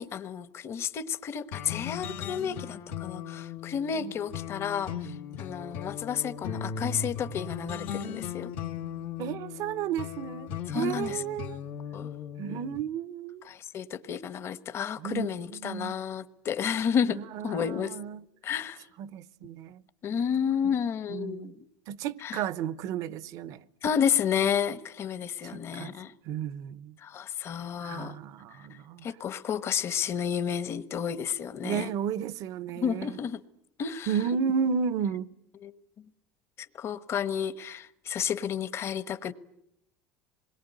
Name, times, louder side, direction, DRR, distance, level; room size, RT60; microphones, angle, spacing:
voice 1, 0.0-8.5 10.7-11.2 11.9-12.1 13.4-17.9 18.4-18.8 20.0-21.6 22.2-22.4 23.8-26.1 27.0-28.2 29.0-31.9 32.8-33.4 33.8-34.1 35.6-35.7 36.8-39.3, left 8 dB, 40° left, 1.3 m, -31 dB
sound 1, 1.5-12.8, left 7 dB, 85° left, 1.8 m, -38 dB
voice 2, 9.2-11.6 12.4-13.5 15.0-16.0 17.1-18.2 19.0-19.8 21.1-21.6 21.9-23.6 25.4-26.0 26.2-27.0 27.8-29.1 31.6-33.2 34.1-35.3, right 7 dB, 60° right, 1.0 m, -33 dB
26.5 x 21.5 x 9.4 m
supercardioid pair, 110°, 6 cm